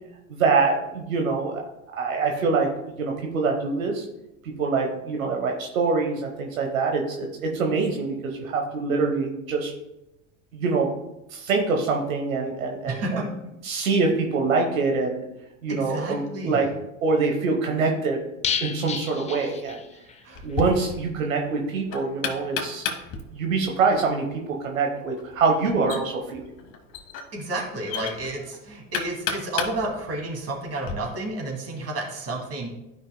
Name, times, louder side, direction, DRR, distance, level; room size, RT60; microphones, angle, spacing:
voice 1, 0.3-1.6 2.0-4.0 4.4-9.7 10.5-10.9 11.3-13.2 13.6-15.2 15.6-16.7 17.0-18.2 18.6-19.8 20.4-22.9 23.3-26.4, right 4 dB, 85° right, 1 dB, 1.2 m, -25 dB
voice 2, 12.9-13.2 15.7-16.7 20.2-20.4 27.3-32.7, right 2 dB, 40° right, 0 dB, 2.5 m, -31 dB
sound 1, 18.4-20.2 20.5-20.6 20.9-21.0, left 7 dB, 20° left, 0.5 m, -31 dB
Knock, 20.3-30.9, left 6 dB, 50° left, 1.5 m, -35 dB
12.0 x 5.3 x 2.2 m, 0.91 s
hypercardioid pair, 85°, 39 cm